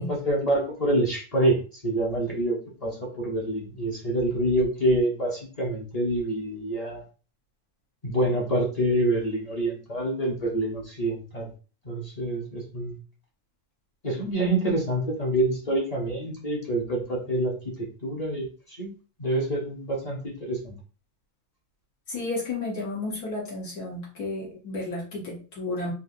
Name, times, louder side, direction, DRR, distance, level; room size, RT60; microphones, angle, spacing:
voice 1, 0.0-7.0 8.0-11.5 11.8-13.0 14.0-20.8, right 1 dB, 35° left, -2 dB, 0.6 m, -27 dB
voice 2, 22.1-25.9, left 2 dB, 90° left, -4 dB, 1.6 m, -32 dB
3.9 x 2.6 x 2.5 m, 0.36 s
omnidirectional pair, 1.6 m